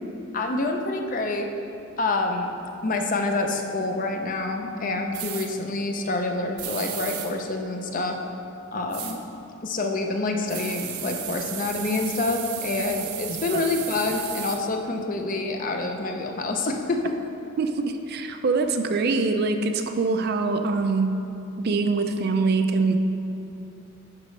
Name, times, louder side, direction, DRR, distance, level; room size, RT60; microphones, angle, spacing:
voice 1, 0.3-1.5 2.0-2.5 2.8-8.2 8.7-9.2 9.6-17.1, left 2 dB, 35° left, 4 dB, 0.6 m, -27 dB
sound 1, 5.1-5.5 6.6-7.3 8.9-9.2 10.5-14.6, right 9 dB, 80° right, 0.7 m, -34 dB
voice 2, 13.3-13.6 17.6-21.2 21.6-23.0, right 3 dB, 45° right, 6 dB, 0.4 m, -24 dB
10.5 x 6.2 x 3.2 m, 3.0 s
head